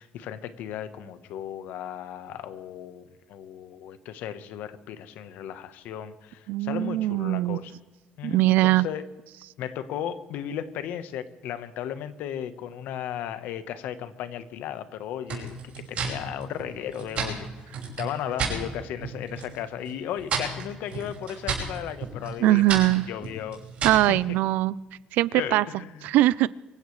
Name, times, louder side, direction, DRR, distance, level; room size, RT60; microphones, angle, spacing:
voice 1, 0.0-7.7 8.2-9.0 9.6-22.6 23.1-23.6 24.1-24.2 25.3-26.1, left 10 dB, 75° left, 12 dB, 1.1 m, -35 dB
voice 2, 6.5-7.7 8.2-8.9 22.4-23.1 23.8-24.8 25.1-25.7 26.0-26.5, right 16 dB, 80° right, 20 dB, 0.4 m, -21 dB
sound 1, 15.3-18.6 19.0-19.6 19.8-24.1, right 5 dB, 45° right, 5.6 m, -32 dB
25.0 x 15.5 x 3.2 m, 1.2 s
cardioid pair, 175°, 3 cm